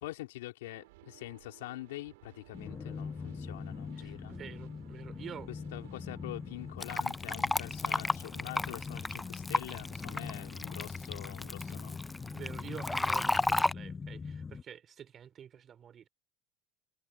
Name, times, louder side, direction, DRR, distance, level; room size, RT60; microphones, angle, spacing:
voice 1, 0.0-4.4 5.7-12.0, left 17 dB, 80° left, 3.7 m, -45 dB
sound 1, 0.6-6.7, right 21 dB, 75° right, 4.3 m, -58 dB
sound 2, 2.5-14.6, left 5 dB, 25° left, 5.4 m, -42 dB
voice 2, 3.9-5.5 5.8-5.9 11.7-12.0 12.3-16.1, right 8 dB, 40° right, 3.0 m, -48 dB
Fill (with liquid), 6.8-13.7, left 2 dB, 10° left, 0.5 m, -33 dB
hypercardioid pair, 80°, 0 cm